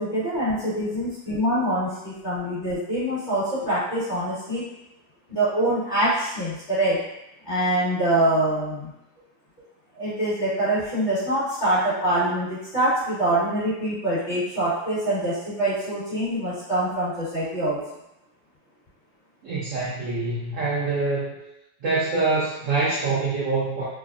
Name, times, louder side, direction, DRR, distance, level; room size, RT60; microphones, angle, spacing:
voice 1, 0.0-4.6 5.3-7.0 7.4-8.9 9.9-17.8, right 1 dB, 30° left, -13 dB, 1.2 m, -24 dB
voice 2, 19.4-21.3 21.8-23.8, right 3 dB, 75° right, -8 dB, 0.7 m, -25 dB
3.4 x 2.0 x 2.4 m, 0.87 s
omnidirectional pair, 2.1 m